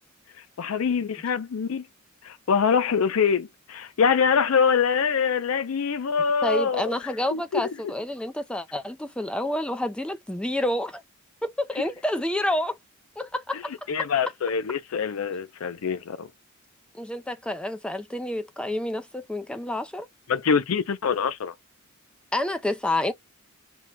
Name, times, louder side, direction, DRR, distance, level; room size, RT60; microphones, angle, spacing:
voice 1, 0.6-1.9 2.2-6.9 7.3-7.7 13.5-13.6 13.9-16.3 20.3-21.5, left 6 dB, 90° left, 0.5 m, -24 dB
voice 2, 6.4-11.0 11.4-12.8 13.2-14.1 16.9-20.1 22.3-23.1, left 1 dB, 5° left, 0.3 m, -29 dB
4.4 x 2.1 x 3.7 m
head